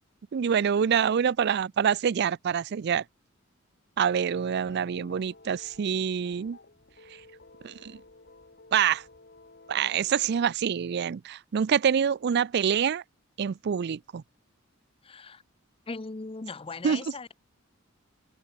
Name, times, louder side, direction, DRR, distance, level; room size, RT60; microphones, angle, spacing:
voice 1, 0.3-3.0 4.0-6.6 7.6-8.0 8.7-9.0 9.7-13.0 13.4-14.2 16.8-17.0, right 7 dB, 55° right, 0.4 m, -26 dB
sound 1, 4.4-10.5, left 3 dB, 50° left, 2.8 m, -54 dB
voice 2, 15.0-15.4 15.9-17.3, left 3 dB, 25° left, 0.7 m, -38 dB
head